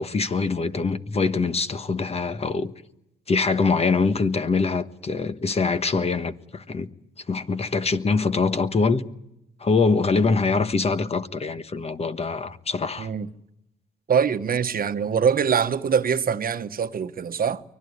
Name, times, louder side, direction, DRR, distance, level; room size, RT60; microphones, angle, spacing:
voice 1, 0.0-2.7 3.3-6.9 7.3-9.0 9.6-13.1, left 4 dB, 30° left, 1.4 m, -24 dB
voice 2, 13.0-13.3 14.1-17.6, right 7 dB, 45° right, 1.3 m, -23 dB
24.0 x 19.0 x 9.7 m
cardioid pair, 90°, 20 cm